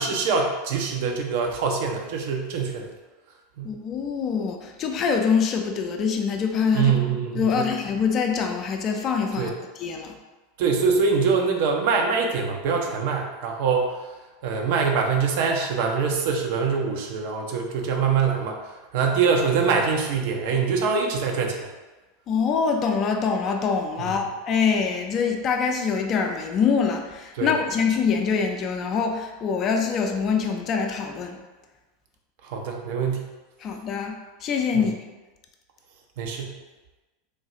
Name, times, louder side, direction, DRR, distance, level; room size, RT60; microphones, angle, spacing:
voice 1, 0.0-2.9 3.6-3.7 6.7-7.7 9.4-9.5 10.6-14.0 14.4-18.6 18.9-21.7 24.0-24.2 27.4-27.5 32.4-33.3 34.7-34.8 36.2-36.6, right 5 dB, 55° right, 2 dB, 0.4 m, -24 dB
voice 2, 3.6-6.9 7.4-10.2 22.3-31.4 33.6-34.1 34.4-34.9, left 6 dB, 35° left, 4 dB, 0.4 m, -24 dB
3.2 x 2.3 x 2.8 m, 1.2 s
figure-of-eight pair, 85°, 0 cm